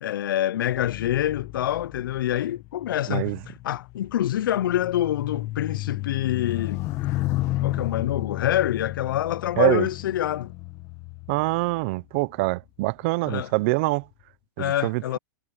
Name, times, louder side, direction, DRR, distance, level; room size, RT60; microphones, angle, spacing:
voice 1, 0.0-3.4 3.6-6.8 7.6-10.5 13.3-13.5 14.6-15.2, left 12 dB, 75° left, 0.4 m, -26 dB
sound 1, 0.7-12.3 13.0-13.3, left 17 dB, 25° left, 1.0 m, -33 dB
voice 2, 3.1-3.4 9.6-9.9 11.3-14.1 14.6-15.0, right 23 dB, 35° right, 0.7 m, -24 dB
supercardioid pair, 165°, 11 cm